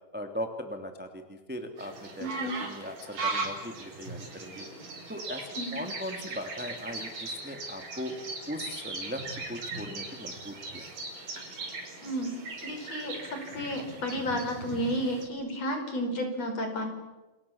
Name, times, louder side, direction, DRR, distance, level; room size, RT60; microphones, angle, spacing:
voice 1, 0.1-4.6 5.1-8.1 8.5-10.9, left 1 dB, 5° right, 5 dB, 2.1 m, -39 dB
sound 1, 1.8-15.2, right 3 dB, 65° right, 7.0 m, -39 dB
voice 2, 2.2-2.5 5.6-5.7 12.0-12.3 12.6-16.9, equal, 45° left, 5 dB, 5.8 m, -32 dB
29.5 x 27.5 x 7.3 m, 1.1 s
omnidirectional pair, 4.2 m